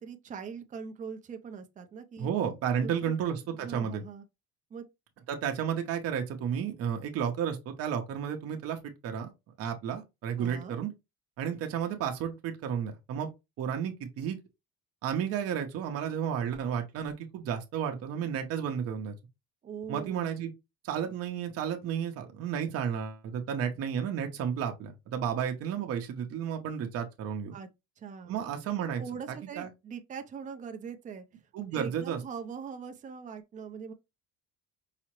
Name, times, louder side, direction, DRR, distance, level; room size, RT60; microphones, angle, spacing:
voice 1, 0.0-2.3 2.8-3.1 3.6-4.2 4.7-4.8 10.4-10.8 19.6-20.3 27.5-27.7 28.0-28.4 28.7-31.2 31.7-33.9, right 6 dB, 25° right, 0.5 m, -42 dB
voice 2, 2.2-4.0 5.3-9.3 9.6-10.9 11.4-13.3 13.6-14.4 15.0-19.1 19.9-20.5 20.8-27.5 28.3-29.0 29.3-29.7 31.5-32.2, right 8 dB, 55° right, 0.8 m, -32 dB
4.8 x 2.0 x 3.0 m
cardioid pair, 140°, 29 cm